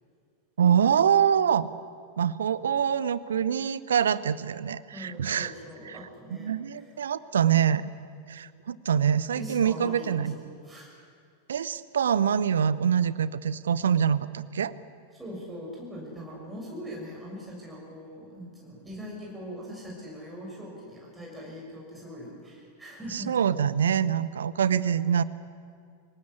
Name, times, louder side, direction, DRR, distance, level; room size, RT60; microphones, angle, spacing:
voice 1, 0.6-1.7 2.2-5.5 5.9-6.0 6.3-7.8 8.3-10.3 11.5-14.7 23.1-25.2, right 8 dB, 65° right, 18 dB, 0.8 m, -25 dB
voice 2, 4.9-6.8 9.4-10.9 15.2-23.3, equal, 10° right, -4 dB, 7.2 m, -41 dB
26.0 x 18.0 x 8.5 m, 2.3 s
figure-of-eight pair, 90°, 0 cm